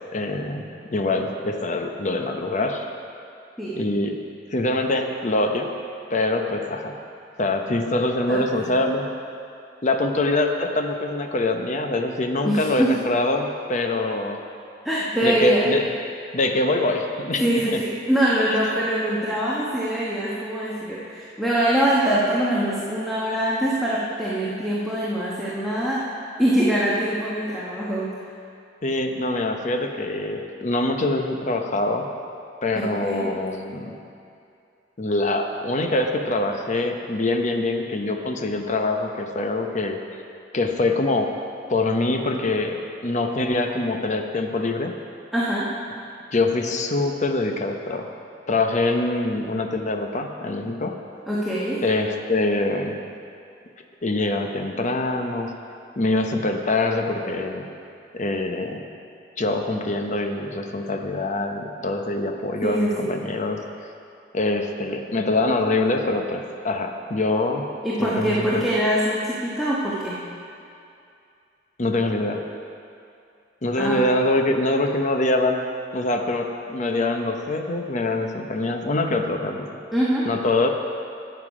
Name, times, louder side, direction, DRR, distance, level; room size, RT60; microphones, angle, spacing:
voice 1, 0.1-2.9 3.8-4.2 4.5-5.7 6.1-6.9 7.4-9.1 9.8-14.4 15.2-15.8 16.3-17.8 18.5-18.6 28.8-32.1 32.6-34.0 35.0-40.0 40.5-41.4 41.7-44.9 46.3-48.1 48.5-51.0 51.8-53.0 54.0-55.5 56.0-57.6 58.1-58.8 59.4-63.6 64.3-67.6 68.0-68.6 71.8-72.4 73.6-75.6 75.9-79.8 80.3-80.7, left 2 dB, 40° left, 4 dB, 0.8 m, -24 dB
voice 2, 8.3-8.7 12.4-13.0 14.8-15.7 17.4-26.0 26.4-28.1 32.7-33.3 45.3-45.7 51.3-51.8 62.6-63.1 67.8-70.2 73.8-74.1 79.9-80.3, right 1 dB, ahead, -7 dB, 1.1 m, -23 dB
12.5 x 8.2 x 4.9 m, 2.5 s
head